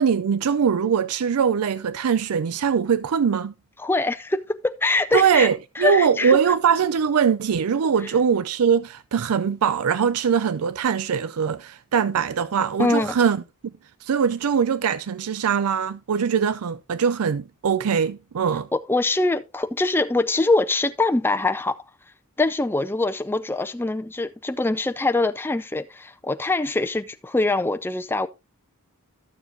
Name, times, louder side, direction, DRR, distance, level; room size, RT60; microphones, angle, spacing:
voice 1, 0.0-3.5 5.1-13.4 14.0-18.7, right 7 dB, 85° right, 0.4 m, -22 dB
voice 2, 3.8-5.5 5.8-6.4 12.8-13.2 18.9-21.7 22.4-28.3, left 2 dB, 10° left, 0.4 m, -23 dB
12.5 x 7.0 x 2.7 m
head